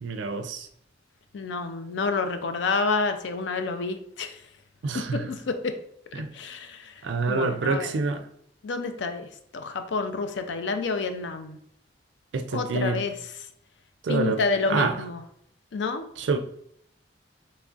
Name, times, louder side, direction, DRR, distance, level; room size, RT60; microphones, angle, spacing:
voice 1, 0.0-0.7 4.8-5.3 6.1-6.3 7.0-8.2 12.3-13.0 14.0-14.4 14.7-15.0 16.2-16.4, right 4 dB, 75° right, 8 dB, 0.4 m, -27 dB
voice 2, 1.3-4.4 5.1-5.7 6.3-6.9 7.3-7.9 8.6-11.6 12.5-13.1 14.1-15.2 15.7-16.1, left 4 dB, 70° left, 8 dB, 0.4 m, -29 dB
3.8 x 3.1 x 2.4 m, 0.70 s
head